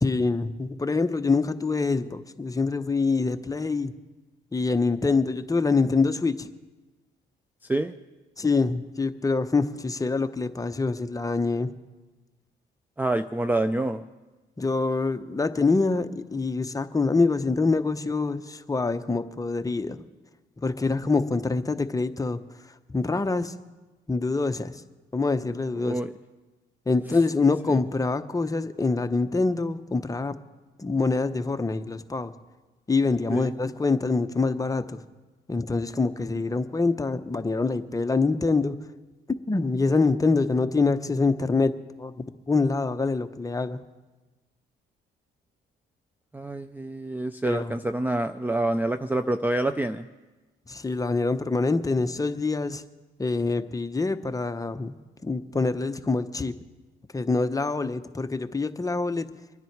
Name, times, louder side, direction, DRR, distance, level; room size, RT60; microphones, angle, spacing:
voice 1, 0.0-3.9 4.5-6.5 8.4-11.7 14.6-20.0 20.6-22.4 22.9-23.5 24.1-24.8 25.1-26.0 26.9-30.3 30.8-32.3 32.9-35.0 35.5-38.8 39.5-41.7 42.0-43.8 47.4-47.7 50.7-52.8 53.2-56.5 57.1-59.3, left 3 dB, 15° left, 9 dB, 0.8 m, -25 dB
voice 2, 13.0-14.1 25.8-26.1 33.3-33.5 46.3-50.1, right 2 dB, 10° right, 10 dB, 0.4 m, -27 dB
24.5 x 10.0 x 4.6 m, 1.2 s
cardioid pair, 90°, 20 cm